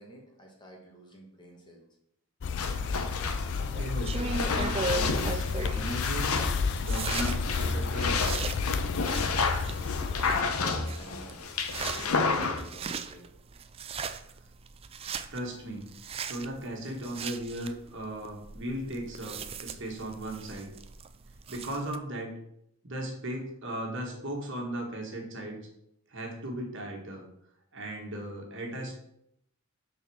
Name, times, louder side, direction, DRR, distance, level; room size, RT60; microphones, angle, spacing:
voice 1, 0.0-1.8 10.2-13.3, left 1 dB, 20° left, 0 dB, 1.6 m, -50 dB
sound 1, 2.4-10.4, left 5 dB, 55° left, 0.4 m, -32 dB
sound 2, 2.6-12.6, left 4 dB, 85° left, 0.9 m, -31 dB
voice 2, 3.5-6.3 6.8-8.4 15.3-15.9 16.2-20.7 21.5-22.4 22.8-25.6 26.1-27.2 27.7-29.0, right 1 dB, 55° right, 1 dB, 1.8 m, -37 dB
sound 3, 3.8-22.0, right 4 dB, 25° right, 0.4 m, -39 dB
6.7 x 4.2 x 6.3 m, 0.75 s
head